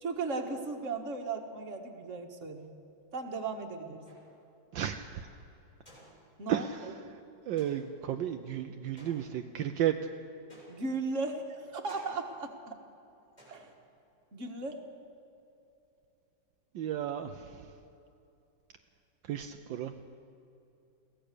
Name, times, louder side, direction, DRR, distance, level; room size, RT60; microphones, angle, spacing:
voice 1, 0.0-2.7 3.1-4.0 6.4-6.9 10.7-12.7 13.5-13.7 14.3-14.8, right 3 dB, 40° right, 3 dB, 1.9 m, -36 dB
sound 1, 4.0-4.6 5.9-6.6 7.6-8.1 9.0-9.7 10.5-11.1 11.9-12.5 13.4-14.0, right 1 dB, 20° left, 6.6 m, -57 dB
voice 2, 4.7-5.3 6.5-6.9 7.5-9.9 16.7-17.5 19.3-19.9, right 10 dB, 75° right, 6 dB, 1.4 m, -33 dB
23.0 x 16.5 x 6.8 m, 2.8 s
omnidirectional pair, 2.1 m